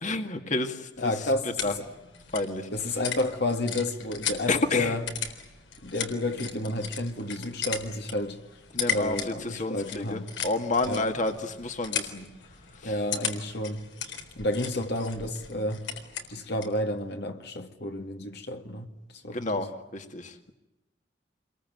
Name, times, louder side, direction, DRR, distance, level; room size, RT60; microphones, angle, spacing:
voice 1, 0.0-1.3 1.6-1.7 2.3-2.7 4.5-5.0 8.7-12.3 12.7-12.9 19.3-20.5, left 2 dB, 45° left, 2.0 m, -30 dB
sound 1, 1.0-16.8, left 7 dB, 85° left, 4.0 m, -37 dB
voice 2, 1.0-1.9 2.7-5.1 5.8-8.4 8.9-10.3 10.8-11.0 12.8-13.9 14.4-15.9 16.3-18.9 19.2-19.4, left 1 dB, 60° left, 2.1 m, -30 dB
27.5 x 22.5 x 9.3 m
head